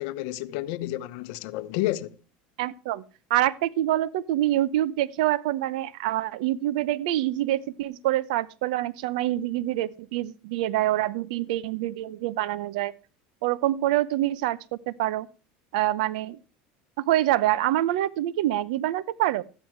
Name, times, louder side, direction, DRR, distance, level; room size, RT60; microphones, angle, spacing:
voice 1, 0.0-2.2, left 16 dB, 70° left, 0.8 m, -30 dB
voice 2, 2.6-3.0 3.3-12.9 13.4-14.6 14.9-15.3 15.7-16.4 17.0-19.4, right 14 dB, 80° right, 0.8 m, -26 dB
13.5 x 9.7 x 4.5 m
supercardioid pair, 120°, 4 cm